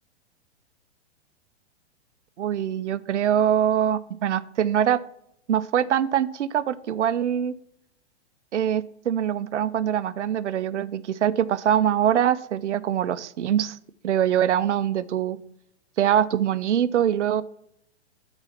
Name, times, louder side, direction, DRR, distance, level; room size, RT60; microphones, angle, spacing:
voice 1, 2.4-5.0 5.5-7.5 8.5-13.8 14.0-15.4 16.0-17.4, right 10 dB, 90° right, 16 dB, 0.6 m, -23 dB
8.9 x 4.1 x 5.7 m, 0.73 s
hypercardioid pair, 130°, 34 cm